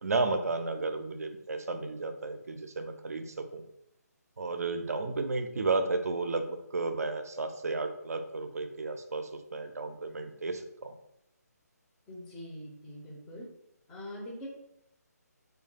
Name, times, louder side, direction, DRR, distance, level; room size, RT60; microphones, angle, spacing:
voice 1, 0.0-3.6 4.4-10.9, right 3 dB, 60° right, 7 dB, 0.4 m, -33 dB
voice 2, 12.1-13.5 13.9-14.5, equal, 5° left, -4 dB, 0.4 m, -43 dB
2.2 x 2.2 x 3.1 m, 0.79 s
figure-of-eight pair, 145°, 9 cm